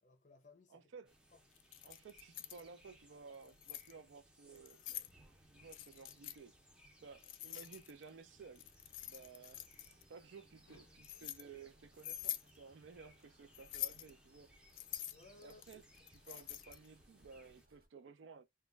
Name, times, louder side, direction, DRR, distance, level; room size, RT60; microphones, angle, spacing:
voice 1, 0.0-0.9 1.3-1.4 15.1-16.2, left 3 dB, 40° left, 0.7 m, -62 dB
voice 2, 0.7-1.1 1.8-4.8 5.5-6.5 7.0-8.7 9.1-9.7 10.1-14.5 15.4-15.8 16.1-18.4, right 5 dB, 80° right, 0.4 m, -56 dB
sound 1, 1.0-17.7, equal, 5° right, 0.5 m, -66 dB
Keys jangling, 1.6-2.6 3.3-3.9 4.6-5.1 5.7-6.4 7.2-8.1 8.6-10.0 10.7-11.4 12.0-12.5 13.5-14.1 14.7-16.9, left 13 dB, 85° left, 0.3 m, -45 dB
sound 2, 8.6-17.9, equal, 50° right, 0.9 m, -71 dB
2.2 x 2.0 x 3.2 m
head